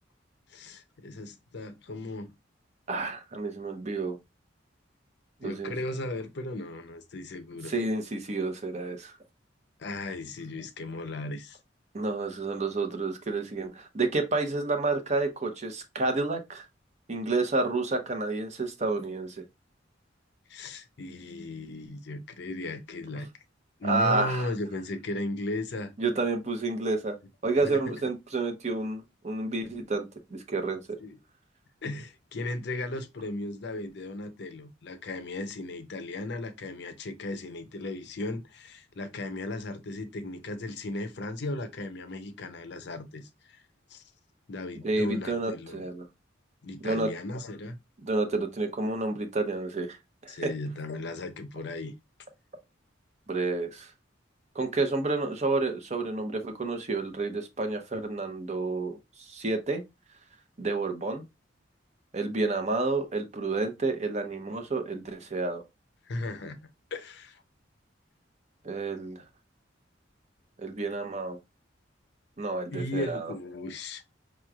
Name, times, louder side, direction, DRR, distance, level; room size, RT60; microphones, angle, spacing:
voice 1, 0.5-2.3 5.4-7.7 9.8-11.6 20.5-23.3 23.8-25.9 27.6-27.9 29.6-29.7 31.0-31.2 31.8-43.6 43.9-44.0 44.5-45.8 46.6-47.8 50.3-51.9 66.1-66.6 66.9-67.4 72.7-74.0, left 2 dB, 60° left, 0.6 m, -36 dB
voice 2, 2.9-4.2 5.4-5.8 7.6-9.1 11.9-16.6 17.1-19.4 23.8-24.5 26.0-27.2 27.4-30.1 30.3-31.0 44.8-46.1 46.8-47.1 48.0-50.0 50.2-50.5 53.3-53.9 54.5-59.0 59.3-59.8 60.6-61.2 62.1-65.6 68.6-69.2 70.6-71.4 72.4-73.3, right 3 dB, 35° right, 0.7 m, -30 dB
4.8 x 3.0 x 2.3 m
head